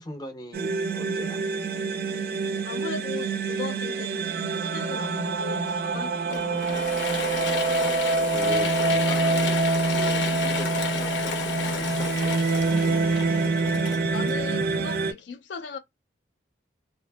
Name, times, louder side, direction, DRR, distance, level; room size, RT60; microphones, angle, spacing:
voice 1, 0.0-1.4 8.3-12.1, equal, 20° left, 0.5 m, -39 dB
sound 1, 0.5-15.1, right 3 dB, 55° right, 0.4 m, -26 dB
voice 2, 2.6-6.7 14.1-15.8, left 5 dB, 70° left, 0.4 m, -38 dB
Mechanisms / Drill, 6.3-14.9, left 4 dB, 85° left, 0.8 m, -31 dB
2.6 x 2.5 x 2.2 m
head